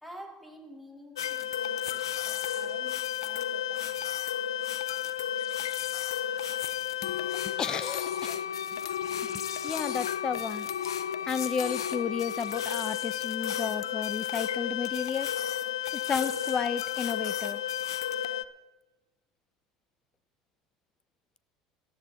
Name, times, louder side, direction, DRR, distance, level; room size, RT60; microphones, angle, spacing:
voice 1, 0.0-4.1, equal, ahead, 2 dB, 3.2 m, -49 dB
sound 1, 1.2-18.4, left 10 dB, 80° left, 0.4 m, -32 dB
voice 2, 7.6-8.4 9.1-10.7 11.3-15.3 15.9-17.6, left 6 dB, 30° left, 17 dB, 0.8 m, -33 dB
18.0 x 14.0 x 3.8 m, 1.1 s
hypercardioid pair, 75°, 2 cm